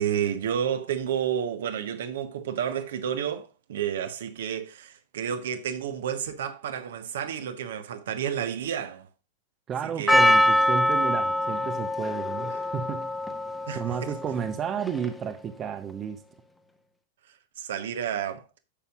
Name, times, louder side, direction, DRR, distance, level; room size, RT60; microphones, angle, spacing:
voice 1, 0.0-9.1 10.0-10.2 13.7-14.1 17.6-18.4, right 9 dB, 60° right, 1.1 m, -30 dB
voice 2, 9.7-13.1 13.7-16.2, right 7 dB, 25° right, 0.8 m, -32 dB
Percussion, 10.1-15.3, left 1 dB, 5° left, 1.1 m, -24 dB
10.0 x 6.9 x 2.4 m
figure-of-eight pair, 90°, 0 cm